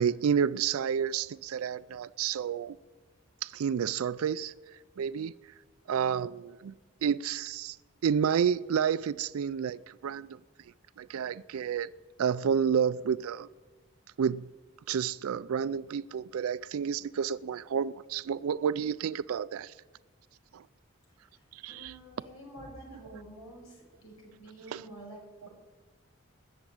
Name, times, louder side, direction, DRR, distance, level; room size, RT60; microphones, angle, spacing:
voice 1, 0.0-2.8 3.4-4.5 5.0-5.3 5.9-6.7 7.0-7.8 8.0-10.4 11.0-11.9 12.2-13.5 14.2-14.5 14.9-19.7 20.5-20.6 21.5-21.9 24.7-24.8, right 7 dB, 85° right, 0.4 m, -30 dB
voice 2, 21.3-25.5, right 1 dB, 85° left, 6.5 m, -49 dB
19.5 x 7.2 x 8.7 m
head